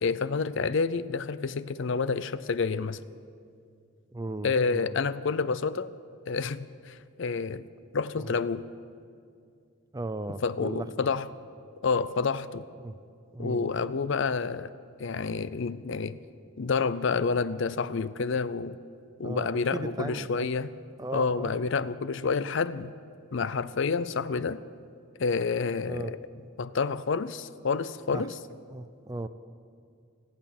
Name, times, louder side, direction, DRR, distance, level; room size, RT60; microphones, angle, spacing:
voice 1, 0.0-3.0 4.4-5.9 6.3-7.6 7.9-8.7 10.4-11.3 11.8-12.7 13.4-14.7 15.0-16.2 16.6-18.8 19.2-20.7 21.1-22.9 23.3-24.6 25.2-26.2 26.6-28.4, left 4 dB, 60° left, 16 dB, 0.5 m, -29 dB
voice 2, 4.1-5.0 8.2-8.4 9.9-11.1 12.8-12.9 13.3-13.8 19.2-20.5 21.0-21.6 25.9-26.1 28.1-28.3 28.7-29.3, right 2 dB, 20° right, 11 dB, 0.5 m, -36 dB
26.0 x 8.8 x 6.0 m, 2.3 s
head